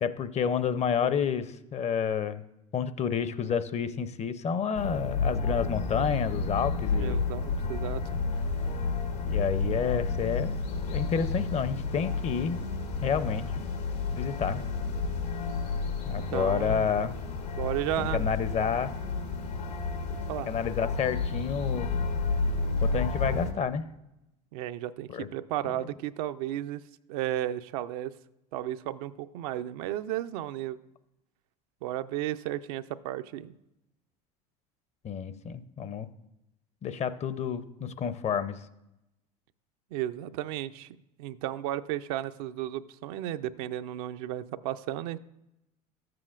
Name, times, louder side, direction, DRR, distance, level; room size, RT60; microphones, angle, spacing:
voice 1, 0.0-2.4 2.7-7.2 9.2-10.5 10.9-12.6 13.0-13.5 14.1-14.6 16.1-17.2 18.0-18.9 20.5-21.9 22.8-23.8 25.1-25.3 35.0-36.1 36.8-38.6, left 7 dB, 35° left, 14 dB, 0.6 m, -29 dB
sound 1, 4.7-23.5, left 4 dB, 85° left, 1.4 m, -31 dB
voice 2, 7.0-8.2 16.1-16.8 17.5-18.3 20.1-20.5 24.5-28.1 28.5-30.8 31.8-33.5 39.9-40.9 41.2-45.2, right 13 dB, 70° right, 11 dB, 0.4 m, -34 dB
13.5 x 7.6 x 2.4 m, 0.89 s
hypercardioid pair, 75°, 20 cm